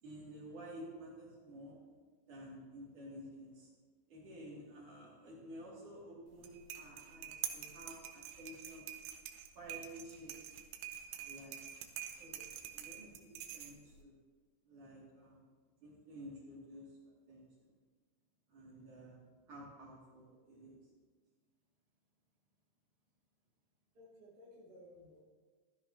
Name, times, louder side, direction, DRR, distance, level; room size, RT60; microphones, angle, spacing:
voice 1, 0.0-1.8 2.3-3.7 4.1-8.9 9.6-10.5 11.1-11.7 12.2-14.2 14.6-15.5 15.8-17.0 17.3-17.7 18.5-20.8, equal, 50° right, -6 dB, 3.7 m, -52 dB
sound 1, 6.3-14.0, right 10 dB, 90° right, 3.3 m, -47 dB
voice 2, 23.9-25.2, left 1 dB, 30° right, -6 dB, 2.3 m, -57 dB
15.5 x 13.0 x 2.9 m, 1.5 s
omnidirectional pair, 5.3 m